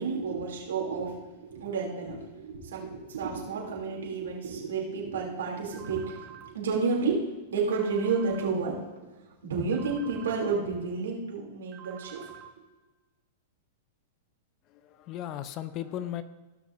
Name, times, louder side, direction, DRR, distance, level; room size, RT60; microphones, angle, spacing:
voice 1, 0.0-8.8 9.4-12.3, right 4 dB, 80° right, -2 dB, 2.9 m, -31 dB
sound 1, 5.7-6.5 7.7-8.5 9.7-10.5 11.7-12.5, right 10 dB, 35° right, 1.4 m, -47 dB
voice 2, 14.7-16.2, left 11 dB, 40° left, 13 dB, 0.6 m, -36 dB
16.5 x 6.4 x 2.7 m, 1.2 s
hypercardioid pair, 115°, 0 cm